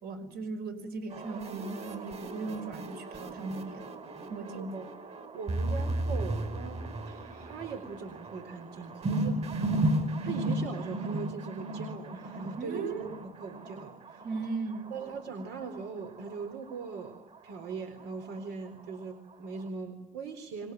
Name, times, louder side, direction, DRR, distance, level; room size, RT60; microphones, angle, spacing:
voice 1, 0.0-3.9 4.3-4.7 12.6-13.2 14.2-15.0, right 3 dB, 65° right, 7 dB, 5.6 m, -37 dB
sound 1, 1.1-19.7, right 1 dB, 40° right, 5.4 m, -35 dB
voice 2, 4.5-5.0 5.3-14.3 14.9-20.7, right 5 dB, 85° right, 7 dB, 4.0 m, -41 dB
26.0 x 22.0 x 9.2 m, 0.92 s
cardioid pair, 110°, 17 cm